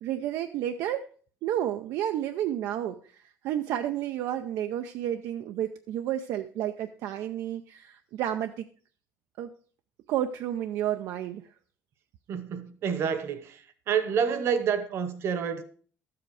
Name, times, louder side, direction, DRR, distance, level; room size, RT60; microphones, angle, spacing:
voice 1, 0.0-1.1 1.4-8.7 9.4-9.5 10.1-11.5, right 11 dB, 70° right, 0.6 m, -31 dB
voice 2, 12.3-13.6 13.9-15.6, right 7 dB, 50° right, 1.1 m, -28 dB
12.5 x 7.8 x 4.8 m
cardioid pair, 160°, 6 cm